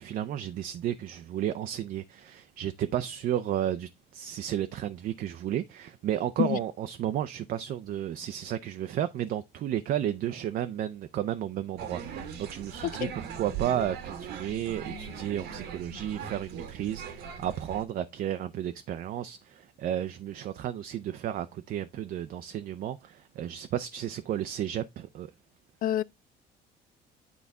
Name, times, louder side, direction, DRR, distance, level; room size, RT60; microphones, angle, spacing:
voice 1, 0.0-25.3, right 11 dB, 60° right, 0.6 m, -33 dB
voice 2, 6.4-6.6 12.8-13.1 25.8-26.0, left 12 dB, 55° left, 0.5 m, -27 dB
sound 1, 11.8-17.8, right 7 dB, 85° right, 1.5 m, -40 dB
9.5 x 4.1 x 3.5 m
cardioid pair, 110°, 17 cm